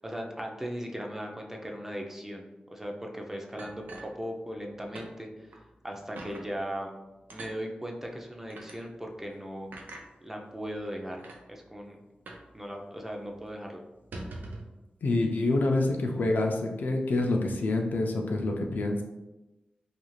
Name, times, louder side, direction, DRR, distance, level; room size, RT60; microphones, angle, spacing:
voice 1, 0.0-3.8 4.2-6.9 7.3-9.7 10.2-11.2 11.5-12.0 12.5-13.8, equal, 10° right, 0 dB, 0.4 m, -38 dB
sound 1, 3.6-4.7 4.9-5.1 5.5-5.6 6.2-6.5 7.3-7.6 8.5-8.8 9.7-10.1 10.8-10.9 11.2-11.4 12.3-12.5 12.8-12.9 13.2-13.4 13.9-14.7, right 2 dB, 80° right, 0.4 m, -43 dB
voice 2, 15.0-19.0, left 2 dB, 75° left, 1 dB, 0.4 m, -27 dB
2.4 x 2.4 x 3.0 m, 1.0 s
wide cardioid pair, 90°, 3 cm